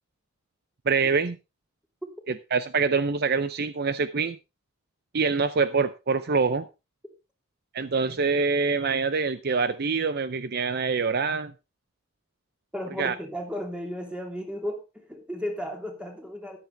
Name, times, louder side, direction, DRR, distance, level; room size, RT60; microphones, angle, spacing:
voice 1, 0.9-1.4 2.5-4.4 5.1-6.7 7.7-11.5 13.0-13.1, right 4 dB, 50° right, 13 dB, 0.6 m, -25 dB
voice 2, 12.7-16.6, equal, 5° right, 3 dB, 2.9 m, -34 dB
14.5 x 11.0 x 3.4 m, 0.27 s
head